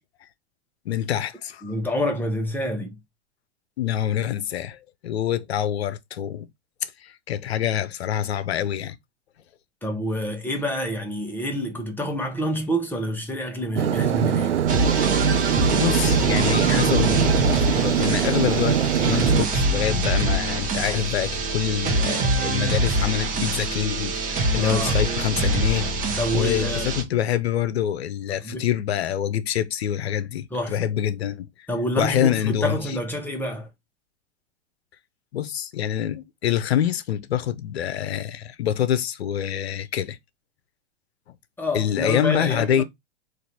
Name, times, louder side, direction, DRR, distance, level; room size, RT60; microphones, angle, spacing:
voice 1, 0.8-1.7 3.8-6.5 6.8-9.0 15.6-25.9 26.3-31.5 32.0-32.8 35.3-40.2 41.7-42.8, left 10 dB, 65° left, 0.7 m, -26 dB
voice 2, 1.6-3.0 9.8-14.6 24.6-25.0 26.2-26.9 28.4-28.7 30.5-30.8 31.7-33.7 41.6-42.8, equal, 5° left, 1.0 m, -27 dB
sound 1, 13.8-19.5, right 9 dB, 80° right, 0.5 m, -22 dB
sound 2, 14.7-27.0, right 2 dB, 25° right, 1.0 m, -24 dB
3.9 x 2.6 x 4.3 m
figure-of-eight pair, 100°, 34 cm